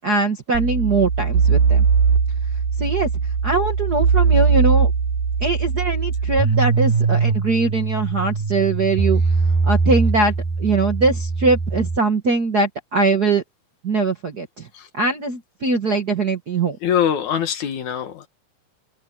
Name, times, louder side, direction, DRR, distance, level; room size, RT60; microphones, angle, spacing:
voice 1, 0.0-1.8 2.8-3.1 3.4-4.9 5.4-9.2 9.6-13.4 13.8-14.7 14.9-16.8, right 3 dB, 45° right, 1.4 m, -21 dB
sound 1, 0.5-12.0, right 5 dB, 75° right, 3.1 m, -20 dB
voice 2, 16.8-18.3, left 9 dB, 65° left, 2.7 m, -23 dB
omnidirectional pair, 3.9 m